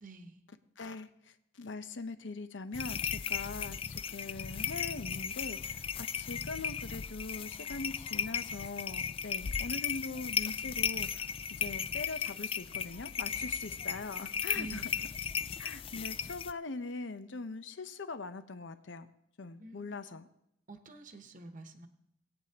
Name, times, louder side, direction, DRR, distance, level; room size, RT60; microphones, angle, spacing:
voice 1, 0.0-0.4 14.5-15.1 19.6-19.9 20.7-21.9, right 2 dB, 45° right, 6 dB, 1.0 m, -48 dB
voice 2, 0.8-11.3 11.6-14.8 15.6-19.1 19.4-20.3, left 3 dB, 70° left, 10 dB, 0.8 m, -42 dB
sound 1, 2.7-16.5, left 7 dB, 30° left, 0.3 m, -36 dB
20.5 x 8.9 x 2.9 m, 0.80 s
head